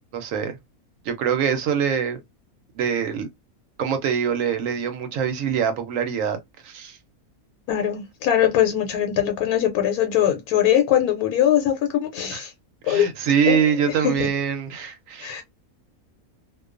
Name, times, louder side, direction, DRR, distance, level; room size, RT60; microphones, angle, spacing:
voice 1, 0.1-0.6 1.0-2.2 2.8-3.3 3.8-6.4 6.6-7.0 12.3-12.4 12.8-15.4, right 7 dB, 70° right, 0.9 m, -24 dB
voice 2, 7.7-12.5 12.9-13.1 13.5-14.3 15.2-15.4, left 10 dB, 90° left, 1.1 m, -21 dB
2.3 x 2.2 x 2.3 m
omnidirectional pair, 1.5 m